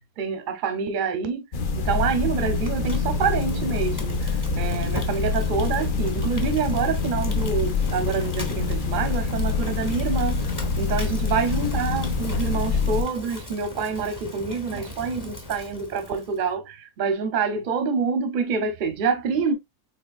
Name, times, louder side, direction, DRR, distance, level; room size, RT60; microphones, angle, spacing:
voice 1, 0.2-1.4 1.8-10.5 10.8-19.5, right 5 dB, 50° right, 0.6 m, -27 dB
sound 1, 1.5-13.0, left 4 dB, 60° left, 0.5 m, -26 dB
Fire, 2.0-16.4, left 2 dB, 20° left, 0.6 m, -38 dB
4.3 x 2.9 x 2.3 m
omnidirectional pair, 1.6 m